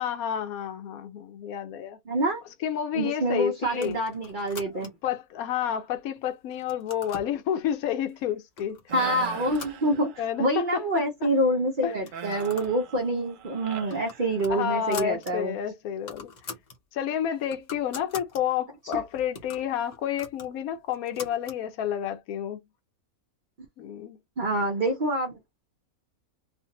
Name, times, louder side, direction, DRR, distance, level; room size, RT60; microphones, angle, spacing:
voice 1, 0.0-2.0 2.6-4.0 4.7-8.8 10.2-11.3 11.8-11.9 13.0-13.2 14.5-16.3 16.9-22.6 23.8-24.2, left 9 dB, 75° left, 1.0 m, -30 dB
voice 2, 2.1-2.4 2.9-4.9 8.9-10.1 10.4-15.6 18.9-19.0 24.4-25.3, right 1 dB, 50° right, 0.6 m, -26 dB
sound 1, 3.7-5.2 5.7-6.2 6.5-7.4 8.1-8.2 8.6-8.8 9.2-10.4 10.8-10.9 11.1-11.2 11.9-12.8 13.1-13.3 13.7-15.3 15.7-15.8 16.0-16.8 17.2-18.4 18.9-21.6, left 4 dB, 45° left, 0.6 m, -43 dB
sound 2, 8.9-10.4 12.1-14.8, right 9 dB, 70° right, 0.9 m, -41 dB
2.5 x 2.4 x 2.8 m
omnidirectional pair, 1.5 m